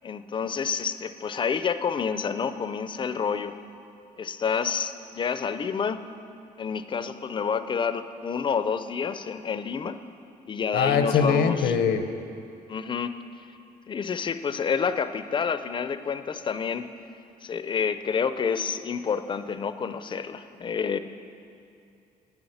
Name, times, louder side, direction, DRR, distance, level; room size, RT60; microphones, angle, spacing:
voice 1, 0.0-3.6 4.2-6.0 6.6-10.0 10.5-11.8 12.7-13.1 13.9-16.9 17.4-21.0, left 6 dB, 30° left, 11 dB, 0.4 m, -29 dB
voice 2, 10.7-12.0, left 6 dB, 85° left, 7 dB, 0.8 m, -22 dB
9.6 x 7.1 x 7.9 m, 2.6 s
cardioid pair, 125°, 16 cm